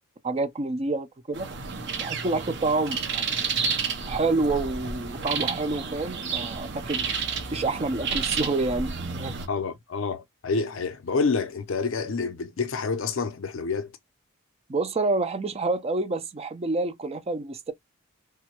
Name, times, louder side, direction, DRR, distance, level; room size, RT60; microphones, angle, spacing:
voice 1, 0.2-1.5 2.0-3.4 4.1-7.0 7.5-9.3 14.7-17.7, right 3 dB, 30° right, 0.5 m, -28 dB
sound 1, 1.3-9.5, right 5 dB, 55° right, 0.8 m, -31 dB
voice 2, 9.5-13.9, left 4 dB, 65° left, 0.6 m, -28 dB
3.4 x 2.1 x 2.9 m
head